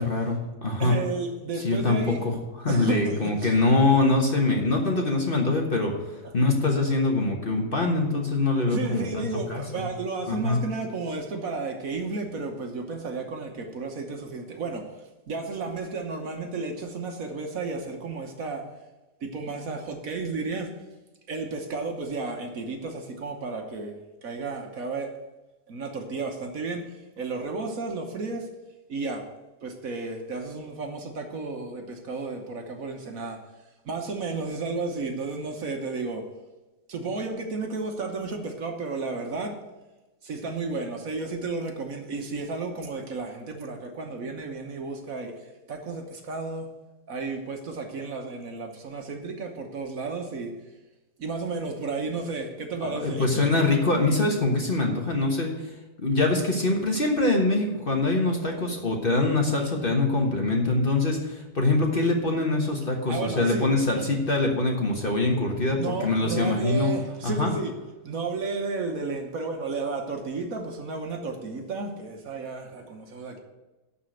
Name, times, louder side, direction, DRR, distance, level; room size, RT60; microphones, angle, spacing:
voice 1, 0.0-0.9 1.6-2.3 2.6-9.9 10.3-10.6 52.8-55.5 56.0-66.9 67.2-67.5, left 2 dB, 35° left, 0 dB, 1.3 m, -24 dB
voice 2, 0.8-2.2 2.7-3.6 8.7-18.6 19.2-20.7 21.3-25.1 25.7-26.8 27.2-28.5 28.9-29.2 29.6-33.4 33.8-36.2 36.9-39.6 40.2-45.3 45.7-46.7 47.1-50.5 51.2-53.5 63.1-63.7 65.7-67.7 68.0-73.4, right 3 dB, 55° right, 3 dB, 1.4 m, -32 dB
12.5 x 4.2 x 7.8 m, 1.1 s
omnidirectional pair, 1.8 m